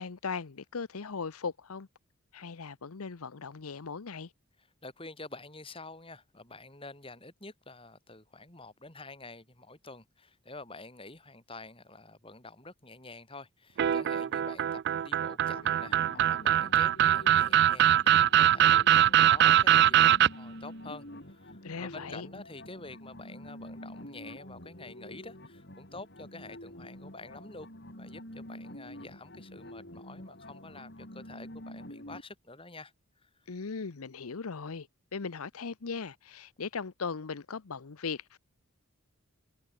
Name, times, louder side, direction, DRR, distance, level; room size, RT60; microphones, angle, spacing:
voice 1, 0.0-1.9 2.3-4.3 21.6-22.3 33.5-38.4, left 5 dB, 80° left, 0.8 m, -38 dB
voice 2, 4.8-27.7 28.0-32.9 33.2-33.5, left 3 dB, 25° left, 6.8 m, -48 dB
sound 1, 13.8-20.3, right 11 dB, 50° right, 0.3 m, -22 dB
sound 2, 15.4-32.2, left 1 dB, 50° left, 6.2 m, -47 dB
head